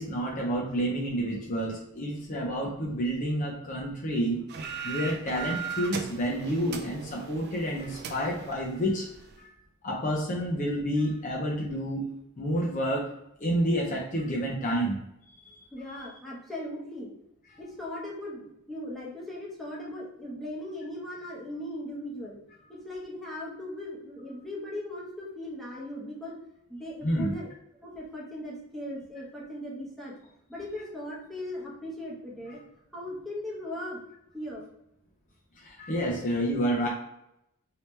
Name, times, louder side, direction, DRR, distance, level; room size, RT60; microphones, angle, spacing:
voice 1, 0.0-4.4 4.8-9.0 9.4-9.5 9.8-12.1 12.4-13.1 13.4-15.0 15.5-15.6 15.9-16.1 27.0-27.3 35.6-36.9, equal, 35° left, -2 dB, 0.6 m, -29 dB
sound 1, 4.5-9.4, right 6 dB, 50° right, 0.4 m, -39 dB
voice 2, 15.7-17.1 17.6-22.4 22.7-26.4 26.7-27.5 27.8-30.1 30.5-32.6 32.9-34.0 34.3-34.6, left 1 dB, ahead, -6 dB, 1.0 m, -38 dB
3.2 x 2.8 x 3.2 m, 0.83 s
head